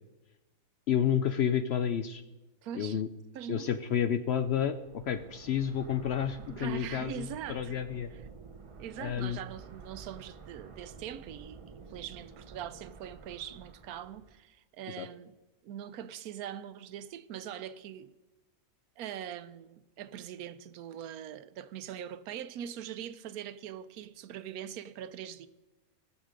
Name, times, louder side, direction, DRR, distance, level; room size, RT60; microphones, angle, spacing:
voice 1, 0.9-2.2 2.7-3.1 3.5-8.1 9.0-9.4 15.0-15.1, left 9 dB, 65° left, 0.6 m, -30 dB
voice 2, 2.6-3.0 3.3-3.7 6.5-7.8 8.1-8.2 8.8-11.6 11.9-15.3 15.6-18.1 19.0-25.5, right 9 dB, 90° right, 1.1 m, -42 dB
sound 1, 4.6-14.5, right 5 dB, 50° right, 0.4 m, -51 dB
18.5 x 7.4 x 5.1 m
omnidirectional pair, 1.5 m